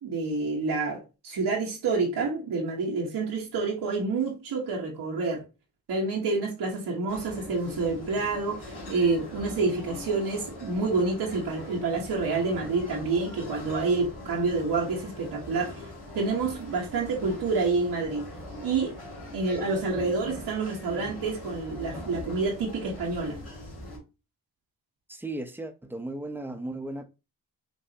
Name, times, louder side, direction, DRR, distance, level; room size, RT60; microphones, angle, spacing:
voice 1, 0.0-5.4 5.9-15.8 16.1-18.3 18.6-18.9 19.3-23.4, right 3 dB, 85° right, 1.3 m, -28 dB
sound 1, 7.1-24.0, left 1 dB, 70° left, 2.5 m, -42 dB
voice 2, 25.1-27.0, right 2 dB, 5° right, 0.8 m, -36 dB
5.8 x 2.7 x 2.9 m
cardioid pair, 60°, 38 cm